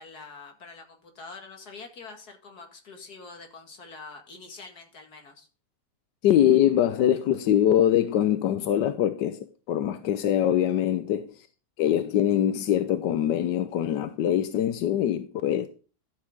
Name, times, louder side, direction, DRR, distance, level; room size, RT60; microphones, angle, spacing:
voice 1, 0.0-5.5, left 4 dB, 65° left, 2.6 m, -45 dB
voice 2, 6.2-11.3 11.8-15.7, left 11 dB, 90° left, 1.4 m, -23 dB
12.0 x 7.6 x 3.9 m
omnidirectional pair, 1.8 m